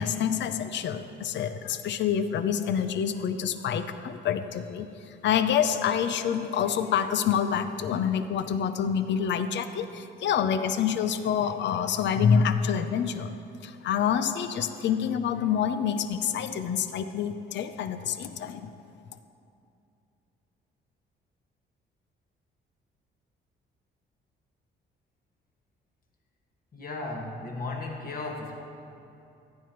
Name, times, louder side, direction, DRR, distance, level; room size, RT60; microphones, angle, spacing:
voice 1, 0.0-4.9 5.2-13.3 13.6-18.7, left 8 dB, 65° left, 10 dB, 0.6 m, -27 dB
voice 2, 26.7-28.6, left 3 dB, 50° left, 0 dB, 1.8 m, -35 dB
15.0 x 10.5 x 3.1 m, 2.7 s
cardioid pair, 90°, 20 cm